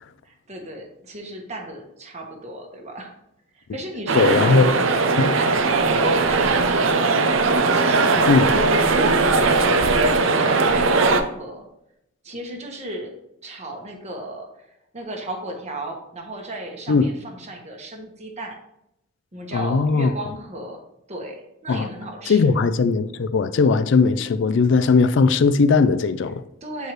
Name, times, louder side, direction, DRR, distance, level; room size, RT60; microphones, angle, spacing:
voice 1, 0.2-3.1 3.5-4.9 5.4-11.7 12.2-13.1 13.4-14.4 14.9-18.6 19.3-20.8 21.1-22.5 26.6-26.9, right 1 dB, 35° right, 1.2 m, -34 dB
voice 2, 4.1-4.7 5.2-5.3 8.3-8.5 16.9-17.1 19.5-20.1 21.7-21.9 22.3-26.4, left 4 dB, 65° left, 0.4 m, -18 dB
sound 1, 4.1-11.2, right 3 dB, 85° right, 0.6 m, -19 dB
8.0 x 4.6 x 3.2 m
head